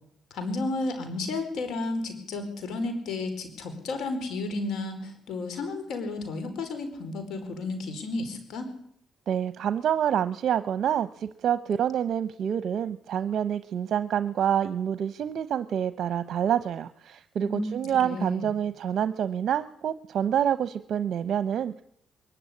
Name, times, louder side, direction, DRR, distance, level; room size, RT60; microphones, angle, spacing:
voice 1, 0.3-8.7 17.4-18.5, left 2 dB, 75° left, 9 dB, 4.7 m, -32 dB
voice 2, 9.3-21.8, right 9 dB, 65° right, 12 dB, 0.9 m, -27 dB
23.0 x 14.0 x 9.7 m, 0.69 s
cardioid pair, 90°, 0 cm